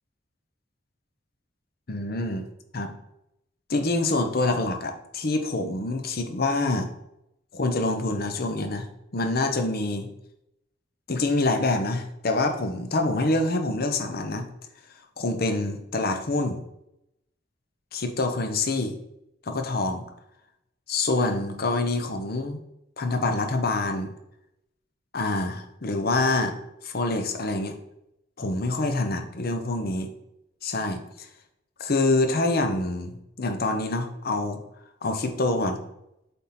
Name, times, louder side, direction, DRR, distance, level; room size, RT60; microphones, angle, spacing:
voice 1, 1.9-2.5 2.7-2.9 3.7-6.9 7.5-8.9 9.1-10.1 11.1-14.5 15.2-16.6 17.9-18.9 19.5-20.0 20.9-22.6 23.0-24.1 25.1-26.6 26.8-27.8 28.4-30.1 30.6-31.3 31.8-34.6 35.0-35.8, left 2 dB, 55° left, 6 dB, 0.8 m, -26 dB
7.7 x 3.7 x 4.3 m, 0.83 s
head